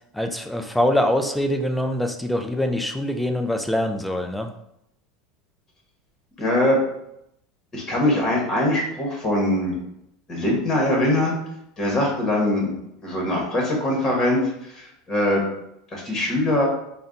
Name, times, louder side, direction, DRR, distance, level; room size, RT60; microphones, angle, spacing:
voice 1, 0.1-4.5, left 1 dB, ahead, 5 dB, 0.3 m, -24 dB
voice 2, 6.4-6.8 7.7-9.8 10.3-11.3 11.8-12.7 13.0-15.4 15.9-16.7, left 1 dB, 20° left, -1 dB, 1.3 m, -22 dB
4.1 x 2.3 x 3.9 m, 0.79 s
supercardioid pair, 150°, 2 cm